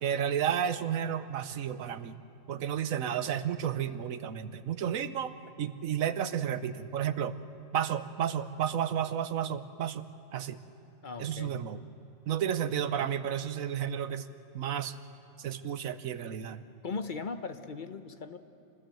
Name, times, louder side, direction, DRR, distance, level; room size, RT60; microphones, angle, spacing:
voice 1, 0.0-2.2 2.5-5.3 5.6-7.3 7.7-10.1 10.3-10.6 11.2-11.8 12.3-14.3 14.5-14.9 15.4-16.6, right 9 dB, 65° right, 12 dB, 1.2 m, -32 dB
voice 2, 11.0-11.6 16.8-18.4, left 4 dB, 40° left, 9 dB, 0.9 m, -38 dB
27.0 x 21.0 x 7.7 m, 2.9 s
omnidirectional pair, 1.6 m